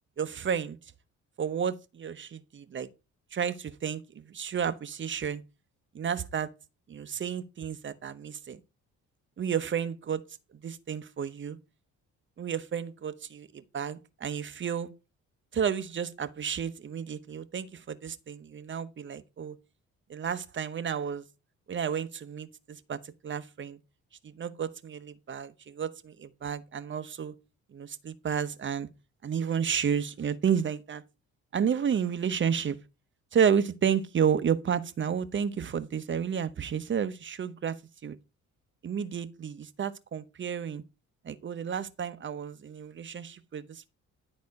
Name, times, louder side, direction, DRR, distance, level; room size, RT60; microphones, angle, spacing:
voice 1, 0.2-0.8 1.4-2.9 3.3-5.4 5.9-6.5 6.9-8.6 9.4-10.2 10.6-11.6 12.4-14.9 15.5-19.6 20.1-21.3 21.7-23.8 24.2-27.3 27.7-28.9 29.2-31.0 31.5-32.8 33.3-37.8 38.0-38.2 38.8-40.8 41.2-43.9, right 7 dB, 40° right, 0.9 m, -31 dB
11.0 x 4.2 x 5.2 m
cardioid pair, 90°, 30 cm